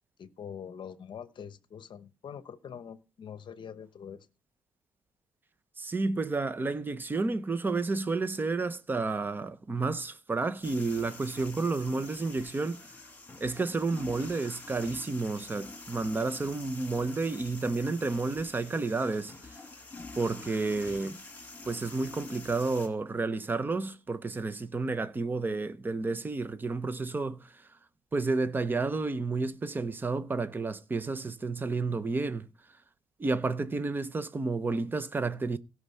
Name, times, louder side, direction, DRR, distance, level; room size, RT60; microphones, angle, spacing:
voice 1, 0.2-4.3, left 7 dB, 40° left, 0.9 m, -44 dB
voice 2, 5.8-12.8 13.4-19.3 20.1-21.2 21.7-27.5 28.1-32.5 33.2-35.6, right 3 dB, 15° right, 0.7 m, -31 dB
sound 1, 10.6-22.9, left 3 dB, 15° left, 2.2 m, -47 dB
17.0 x 6.3 x 5.5 m
cardioid pair, 165°, 13 cm